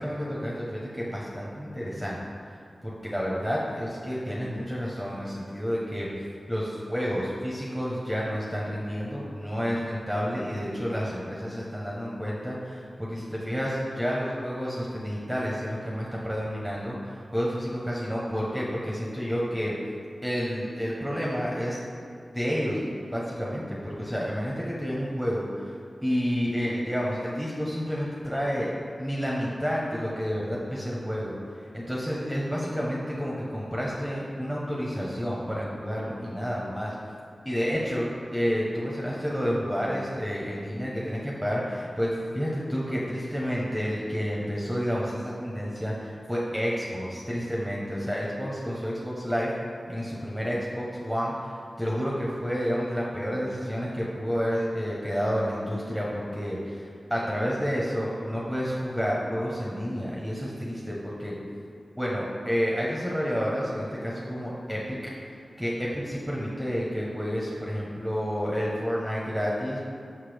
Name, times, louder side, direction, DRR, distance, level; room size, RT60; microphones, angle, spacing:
voice 1, 0.0-2.2 2.8-6.1 6.5-19.7 20.2-21.8 22.3-22.8 23.1-25.7 26.0-28.7 29.0-31.3 31.7-37.0 37.4-49.5 49.9-51.5 51.8-61.4 62.0-65.1 65.6-69.8, equal, 5° right, -5 dB, 0.9 m, -30 dB
5.9 x 5.5 x 3.4 m, 2.4 s
cardioid pair, 50°, 0 cm